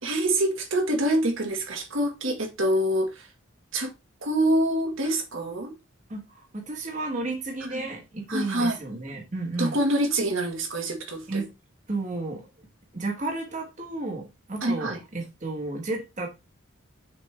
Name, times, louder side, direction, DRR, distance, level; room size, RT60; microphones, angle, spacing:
voice 1, 0.0-3.3 3.7-3.9 4.2-5.7 7.7-7.8 8.3-8.8 9.6-11.4 14.6-15.0, right 1 dB, 75° right, 1.7 m, -26 dB
voice 2, 6.1-9.8 11.3-11.5 11.9-12.5 12.9-16.3, right 2 dB, 35° right, 1.4 m, -32 dB
6.5 x 4.3 x 3.4 m
head